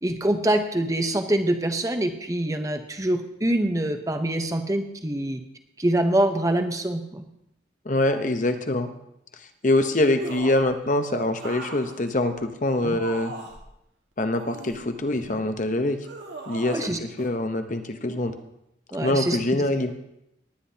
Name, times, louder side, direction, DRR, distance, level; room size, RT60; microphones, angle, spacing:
voice 1, 0.0-5.4 5.8-7.2 12.8-13.0 16.7-17.0 18.9-19.4, right 1 dB, 20° right, 6 dB, 0.9 m, -25 dB
voice 2, 7.8-8.9 9.4-13.3 14.2-16.0 16.5-16.8 17.2-18.3 19.0-19.9, left 1 dB, 45° left, 8 dB, 0.8 m, -24 dB
sound 1, 10.2-10.7 11.4-13.7 14.3-15.4 16.0-16.9 17.2-17.3, right 2 dB, 85° right, 1.8 m, -39 dB
19.0 x 9.9 x 2.8 m, 0.82 s
head